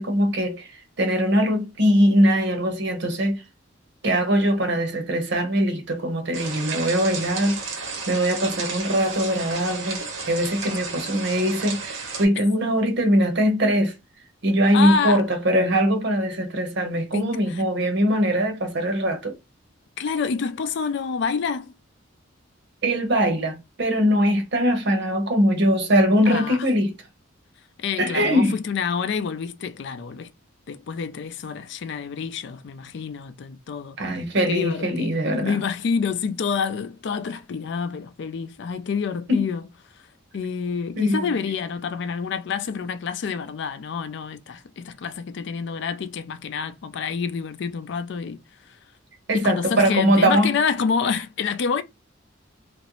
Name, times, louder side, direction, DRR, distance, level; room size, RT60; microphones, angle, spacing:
voice 1, 0.0-3.4 4.0-13.9 14.4-19.4 22.8-26.9 28.0-28.6 34.0-35.6 39.3-39.5 41.0-41.3 49.3-50.6, equal, 60° right, 0.8 m, -21 dB
sound 1, 6.3-12.3, right 4 dB, 85° right, 1.1 m, -33 dB
voice 2, 14.7-15.2 17.1-17.6 20.0-21.7 26.3-26.6 27.8-30.3 30.7-34.0 34.5-39.6 40.3-48.4 49.3-51.8, left 6 dB, 60° left, 0.4 m, -28 dB
2.9 x 2.5 x 3.0 m
head